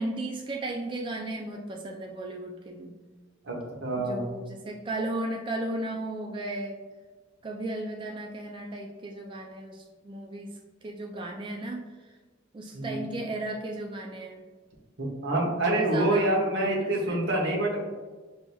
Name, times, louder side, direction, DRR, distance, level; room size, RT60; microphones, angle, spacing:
voice 1, 0.0-2.9 3.9-6.8 7.4-10.5 10.8-11.8 12.5-14.4 15.4-17.2, right 1 dB, 25° right, 1 dB, 0.3 m, -35 dB
voice 2, 3.8-4.3 12.7-13.2 15.0-17.9, right 1 dB, 60° right, -2 dB, 1.0 m, -26 dB
6.2 x 2.7 x 2.2 m, 1.3 s
head